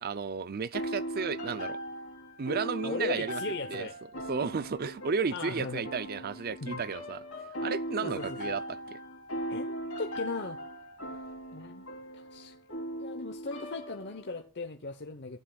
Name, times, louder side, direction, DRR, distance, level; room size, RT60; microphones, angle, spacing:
voice 1, 0.0-1.8 2.4-3.4 3.7-3.9 4.3-7.2 7.6-9.0, right 5 dB, 45° right, 0.5 m, -33 dB
sound 1, 0.7-14.4, equal, 65° left, 3.0 m, -39 dB
voice 2, 2.8-4.0 4.4-4.6 5.3-5.8 6.6-6.8 8.0-8.5 9.5-10.6 11.5-11.9 12.1-12.5 13.0-15.4, left 3 dB, 50° left, 0.9 m, -38 dB
15.0 x 10.0 x 2.4 m
head